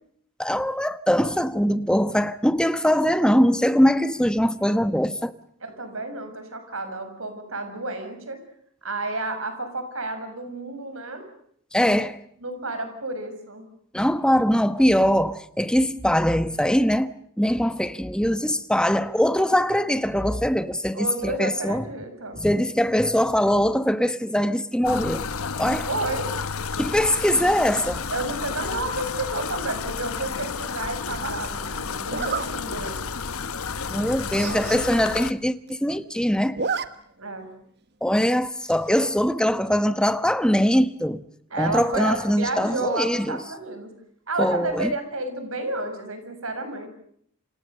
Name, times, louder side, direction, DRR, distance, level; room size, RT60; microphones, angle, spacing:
voice 1, 0.4-5.3 11.7-12.1 13.9-17.1 17.4-21.9 22.4-25.3 25.6-25.9 26.8-28.0 33.9-36.6 38.0-41.2 41.6-43.4 44.4-44.9, equal, 5° left, 1.1 m, -22 dB
voice 2, 5.6-8.4 8.8-11.2 11.7-12.0 12.4-13.6 20.9-22.4 25.8-26.3 28.1-33.0 37.2-37.5 41.5-43.9 44.3-46.9, right 2 dB, 70° right, 6.7 m, -31 dB
sound 1, 24.8-35.3, left 5 dB, 75° left, 1.1 m, -31 dB
Zipper (clothing), 30.1-30.5 32.1-32.5 33.0-33.2 33.5-33.6 33.9-34.0 34.2-34.8 35.2-35.3 35.5-36.0 36.3-36.9 37.2-37.3 38.6-39.0, right 5 dB, 50° right, 1.4 m, -31 dB
29.0 x 26.5 x 6.8 m
head